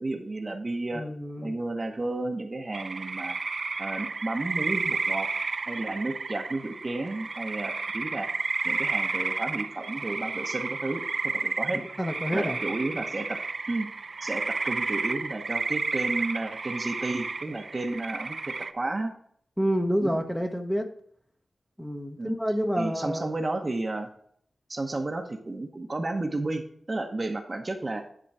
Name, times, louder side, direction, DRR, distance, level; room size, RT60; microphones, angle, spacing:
voice 1, 0.0-1.0 1.4-3.4 3.8-5.3 5.7-8.3 8.6-11.8 12.3-13.4 13.7-13.9 14.2-19.1 20.0-20.2 22.2-22.4 22.8-24.1 24.7-28.0, right 2 dB, 30° right, 5 dB, 0.9 m, -32 dB
voice 2, 0.9-1.6 11.7-12.6 19.6-20.9 21.8-23.3, equal, ahead, 4 dB, 0.9 m, -28 dB
sound 1, 2.7-18.7, right 4 dB, 50° right, 0.5 m, -32 dB
10.0 x 3.8 x 4.7 m, 0.63 s
wide cardioid pair, 125°, 0 cm